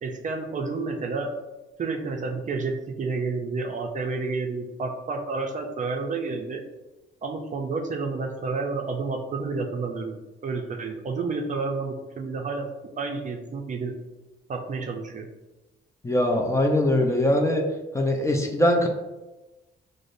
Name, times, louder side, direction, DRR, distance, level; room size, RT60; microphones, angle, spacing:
voice 1, 0.0-1.3 1.8-6.6 7.2-12.7 13.0-13.9 14.5-15.3, right 4 dB, 40° right, 2 dB, 0.5 m, -30 dB
voice 2, 16.0-17.6 17.9-18.9, left 1 dB, 15° left, 1 dB, 0.5 m, -22 dB
4.8 x 2.0 x 2.6 m, 1.1 s
cardioid pair, 90°, 20 cm